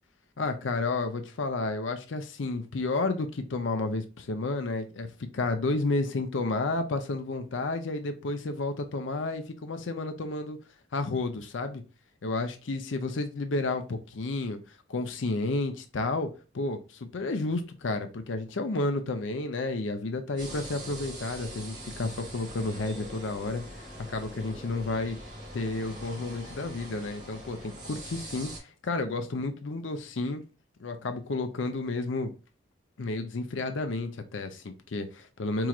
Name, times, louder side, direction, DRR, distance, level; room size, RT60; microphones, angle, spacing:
voice 1, 0.4-10.6 10.9-11.8 12.2-25.2 25.5-30.4 30.8-32.3 33.0-35.7, left 3 dB, 80° left, 0.6 m, -31 dB
sound 1, 20.4-28.6, equal, 35° right, 2.2 m, -42 dB
4.7 x 3.0 x 2.4 m
head